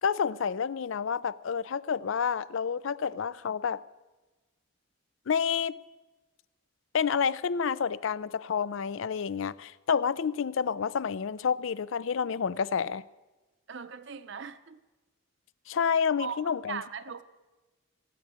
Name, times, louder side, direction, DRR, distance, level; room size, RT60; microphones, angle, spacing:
voice 1, 0.0-3.8 5.3-5.8 6.9-13.0 15.7-16.8, left 6 dB, 65° left, 0.4 m, -29 dB
voice 2, 13.7-14.8 16.2-17.2, right 6 dB, 55° right, 0.6 m, -39 dB
16.5 x 9.6 x 8.8 m
head